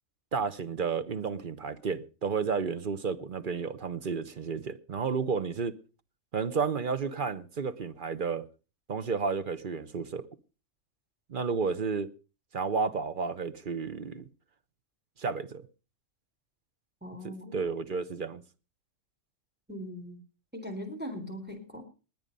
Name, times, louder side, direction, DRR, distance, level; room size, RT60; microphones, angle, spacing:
voice 1, 0.3-5.8 6.3-8.4 8.9-10.3 11.3-12.1 12.5-14.2 15.2-15.7 17.2-18.4, right 5 dB, 45° right, 1.0 m, -32 dB
voice 2, 17.0-17.7 19.7-20.2 20.5-21.8, equal, 5° right, 3.8 m, -40 dB
20.5 x 8.9 x 5.4 m
omnidirectional pair, 1.3 m